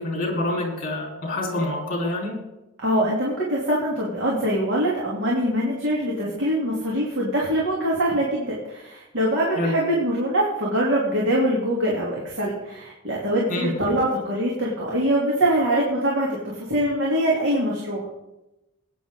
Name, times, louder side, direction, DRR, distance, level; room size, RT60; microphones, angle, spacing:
voice 1, 0.0-2.4 9.6-9.7 13.5-13.7, left 1 dB, 40° left, -1 dB, 4.1 m, -26 dB
voice 2, 2.8-18.1, right 1 dB, 55° right, -5 dB, 2.9 m, -23 dB
19.5 x 9.9 x 3.8 m, 0.96 s
head